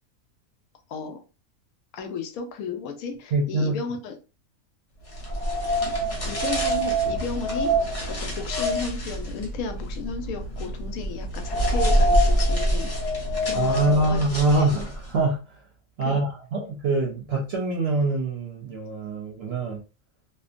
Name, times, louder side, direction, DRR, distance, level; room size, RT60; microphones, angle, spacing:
voice 1, 1.9-4.1 6.2-7.8 8.1-12.9 13.4-14.2 14.5-14.7 16.0-16.2, left 5 dB, 85° left, 6 dB, 1.0 m, -34 dB
voice 2, 3.3-3.8 13.5-15.6 16.0-19.8, right 2 dB, 60° right, -1 dB, 0.7 m, -24 dB
sound 1, 5.1-15.1, right 1 dB, 35° left, 0.6 m, -25 dB
2.6 x 2.2 x 2.4 m, 0.32 s
omnidirectional pair, 1.5 m